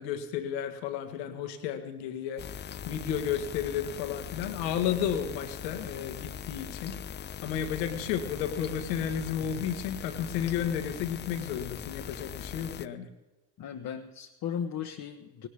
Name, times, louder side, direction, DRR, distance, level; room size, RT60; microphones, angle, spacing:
voice 1, 0.0-7.0 7.4-13.1, left 9 dB, 75° left, 7 dB, 1.6 m, -32 dB
sound 1, 2.4-12.9, left 8 dB, 25° left, 0.4 m, -41 dB
voice 2, 13.6-15.5, left 8 dB, 45° left, 3 dB, 1.2 m, -36 dB
18.5 x 18.0 x 3.5 m, 1.1 s
hypercardioid pair, 60°, 50 cm